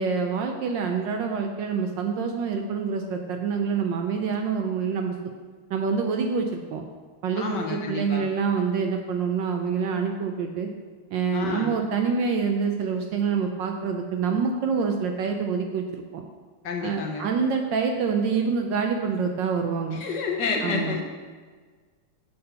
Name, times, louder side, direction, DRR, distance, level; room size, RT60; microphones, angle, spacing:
voice 1, 0.0-5.1 5.7-6.8 7.2-10.7 11.1-16.2 16.8-20.0 20.6-21.0, right 5 dB, 75° right, 4 dB, 1.1 m, -26 dB
voice 2, 7.3-8.3 11.3-11.8 16.6-17.3 19.9-21.0, left 5 dB, 70° left, 1 dB, 1.1 m, -29 dB
6.7 x 4.3 x 6.6 m, 1.5 s
omnidirectional pair, 2.3 m